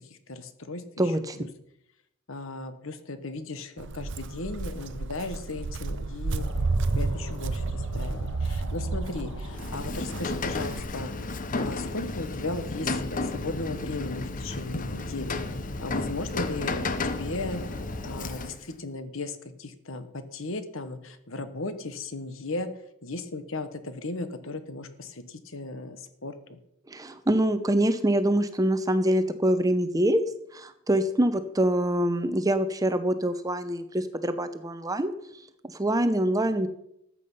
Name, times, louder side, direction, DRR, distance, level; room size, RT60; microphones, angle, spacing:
voice 1, 0.1-1.5 2.3-6.5 6.9-11.1 11.6-15.4 15.8-17.6 18.0-22.7 23.0-26.6, left 2 dB, 60° left, 10 dB, 1.2 m, -36 dB
voice 2, 1.0-1.4 26.9-30.2 30.5-35.1 35.7-36.7, right 1 dB, 15° right, 10 dB, 0.7 m, -25 dB
Walk footsteps, 3.8-10.8, right 3 dB, 55° right, 0.6 m, -31 dB
sound 1, 6.3-18.5, left 1 dB, 85° left, 1.6 m, -40 dB
Rain, 9.5-18.7, left 3 dB, 35° left, 0.8 m, -33 dB
14.0 x 8.5 x 5.5 m, 0.77 s
head